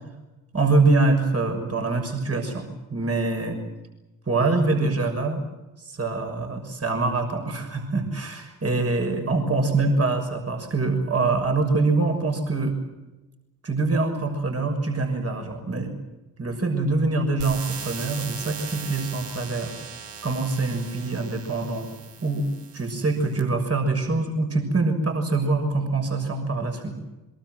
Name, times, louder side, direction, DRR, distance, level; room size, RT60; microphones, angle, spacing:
voice 1, 0.5-3.6 4.3-5.4 5.8-12.7 13.6-15.9 16.4-19.7 20.2-21.9 22.2-22.5 22.7-27.0, right 3 dB, 30° right, 4 dB, 6.5 m, -24 dB
sound 1, 17.4-23.4, right 6 dB, 65° right, 3.4 m, -39 dB
24.0 x 23.0 x 7.9 m, 1.1 s
hypercardioid pair, 40°, 45 cm